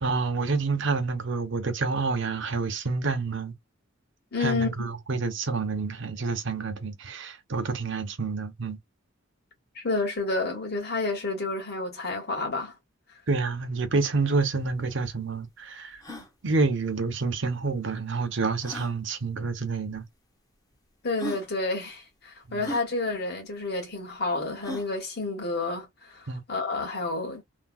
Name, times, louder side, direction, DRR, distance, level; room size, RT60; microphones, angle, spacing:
voice 1, 0.0-3.5 4.4-8.8 13.3-16.0 16.4-20.0 22.5-22.6 26.3-26.4, right 4 dB, 65° right, 0.8 m, -28 dB
voice 2, 4.3-4.9 9.7-12.7 21.0-27.4, left 3 dB, 55° left, 1.5 m, -30 dB
sound 1, 14.4-14.5 14.7-14.8 15.3-15.4 15.9-16.3 17.6-17.7 18.6-18.9 19.9-20.0 20.7-20.8 21.2-21.5 22.6-22.9 24.6-24.9, left 1 dB, 20° left, 0.7 m, -37 dB
3.4 x 2.2 x 2.3 m
head